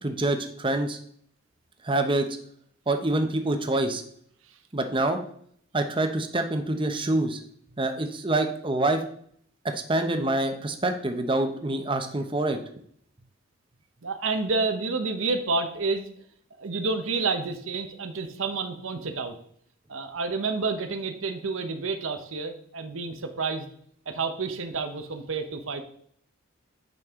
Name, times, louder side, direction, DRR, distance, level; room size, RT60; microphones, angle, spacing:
voice 1, 0.0-1.0 1.8-2.3 2.9-4.0 4.7-5.2 5.7-7.4 7.8-9.0 9.6-12.6, right 2 dB, 25° right, 6 dB, 0.8 m, -26 dB
voice 2, 14.0-16.1 16.6-19.4 19.9-23.7 24.1-25.8, right 4 dB, 75° right, 7 dB, 0.9 m, -29 dB
9.4 x 5.4 x 3.6 m, 0.64 s
head